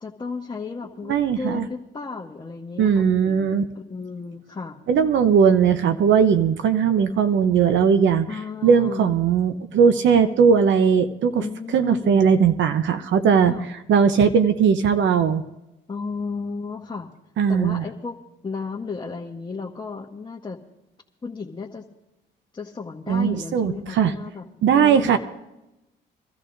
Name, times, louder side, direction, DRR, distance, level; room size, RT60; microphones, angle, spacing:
voice 1, 0.0-4.8 8.3-9.1 11.4-12.2 13.5-13.7 15.9-17.1 17.5-18.2 18.4-20.6 21.2-21.8 22.5-24.4 24.7-25.2, left 4 dB, 25° left, -1 dB, 1.1 m, -33 dB
voice 2, 1.1-1.7 2.8-3.6 4.9-8.3 8.6-11.4 11.7-13.5 13.9-15.4 17.4-17.8 23.1-24.1 24.6-25.2, right 7 dB, 70° right, 9 dB, 0.8 m, -18 dB
25.5 x 13.0 x 2.6 m, 0.95 s
cardioid pair, 90°, 20 cm